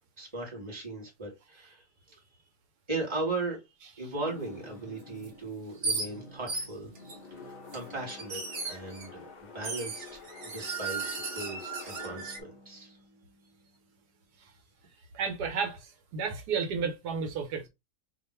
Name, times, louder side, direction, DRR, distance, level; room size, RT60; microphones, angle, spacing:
voice 1, 0.2-2.2 2.9-3.6 3.9-6.9 7.4-11.0 11.3-13.0, right 2 dB, 20° right, 1.3 m, -38 dB
sound 1, 4.1-14.1, left 3 dB, 75° left, 0.4 m, -49 dB
sound 2, 5.2-5.3 5.8-6.1 6.5-7.2 7.7-9.1 9.6-12.4, right 4 dB, 45° right, 0.7 m, -35 dB
voice 2, 15.1-17.7, right 5 dB, 75° right, 1.2 m, -32 dB
2.8 x 2.3 x 4.2 m
omnidirectional pair, 1.8 m